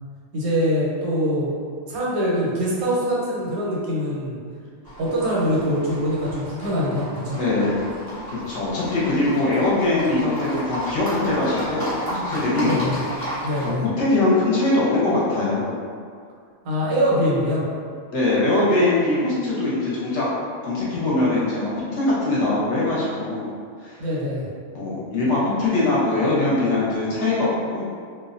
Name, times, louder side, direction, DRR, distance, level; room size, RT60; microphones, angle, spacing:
voice 1, 0.3-1.6 1.9-4.4 5.0-7.4 12.6-13.0 13.4-13.9 16.6-17.6 24.0-24.5, equal, 90° right, -6 dB, 1.2 m, -23 dB
Livestock farm animals working animals, 4.8-13.7, equal, 30° left, 0.4 m, -33 dB
voice 2, 7.4-7.8 8.3-12.8 13.6-15.7 18.1-20.3 20.6-23.5 23.8-24.0 24.7-27.8, left 2 dB, 65° left, -7 dB, 0.8 m, -22 dB
2.6 x 2.1 x 2.5 m, 2.1 s
omnidirectional pair, 1.5 m